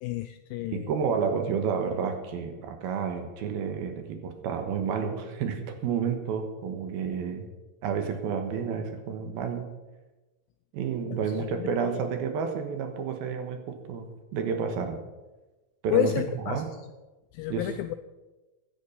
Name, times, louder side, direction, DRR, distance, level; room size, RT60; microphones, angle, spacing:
voice 1, 0.0-0.9 11.1-11.2 11.6-12.0 15.9-16.6 17.3-17.9, left 14 dB, 85° left, 9 dB, 2.0 m, -30 dB
voice 2, 0.7-7.5 7.8-9.7 10.7-15.0 15.8-16.7 17.5-17.7, right 6 dB, 75° right, 6 dB, 3.1 m, -30 dB
16.0 x 10.5 x 5.6 m, 1.1 s
omnidirectional pair, 4.6 m